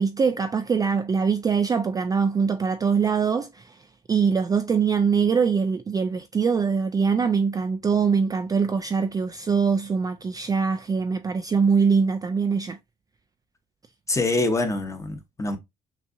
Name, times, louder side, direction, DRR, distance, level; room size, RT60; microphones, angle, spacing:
voice 1, 0.0-3.8 4.1-12.8, right 5 dB, 20° right, 0.3 m, -23 dB
voice 2, 14.1-15.6, left 2 dB, 20° left, 1.0 m, -25 dB
6.0 x 2.6 x 2.6 m
cardioid pair, 110°, 17 cm